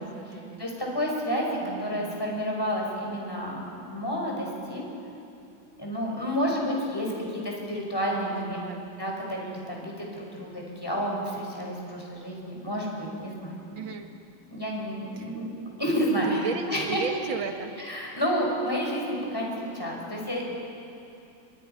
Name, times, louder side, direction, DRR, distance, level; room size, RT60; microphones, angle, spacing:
voice 1, 0.0-0.7 1.6-2.3 6.7-7.5 8.3-8.8 13.8-14.1 15.2-15.3 16.2-17.7, right 5 dB, 80° right, 5 dB, 2.3 m, -36 dB
voice 2, 0.6-1.5 1.8-4.8 5.8-8.6 9.0-13.8 14.5-15.5 15.8-16.4 16.7-17.0 17.9-20.4, equal, 10° left, -2 dB, 5.2 m, -30 dB
28.0 x 24.0 x 5.6 m, 2.7 s
omnidirectional pair, 2.1 m